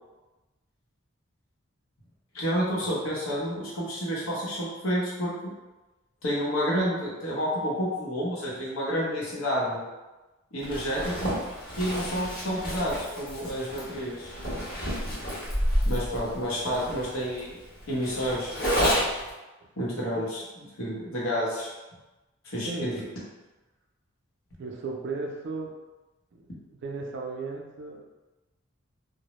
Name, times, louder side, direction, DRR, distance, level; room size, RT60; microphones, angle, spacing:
voice 1, 2.3-5.3 6.2-9.8 10.5-11.4 11.8-14.3 15.9-17.6 17.9-18.6 19.8-21.7 22.4-23.0, equal, 75° left, -5 dB, 0.8 m, -29 dB
Zipper (clothing), 10.6-19.3, equal, 45° left, 0.9 m, -30 dB
voice 2, 22.7-23.1 24.6-25.7 26.3-26.4 26.7-28.0, right 3 dB, 55° right, 0 dB, 0.4 m, -35 dB
2.1 x 2.0 x 2.9 m, 1.1 s
head